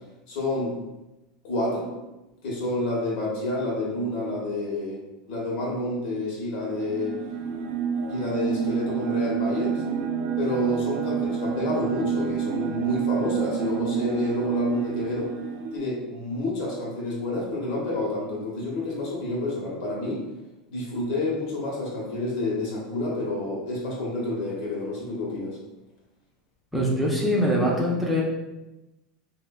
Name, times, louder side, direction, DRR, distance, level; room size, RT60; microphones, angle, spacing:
voice 1, 0.3-0.8 1.4-1.9 2.4-5.0 5.3-7.2 8.1-9.8 10.4-15.3 15.7-20.2 20.7-25.6, left 2 dB, 65° left, -3 dB, 1.0 m, -29 dB
sound 1, 6.6-15.8, right 7 dB, 55° right, 0.6 m, -28 dB
voice 2, 26.7-28.2, equal, 5° right, -5 dB, 0.6 m, -23 dB
3.1 x 2.1 x 2.3 m, 1.0 s
hypercardioid pair, 105°, 4 cm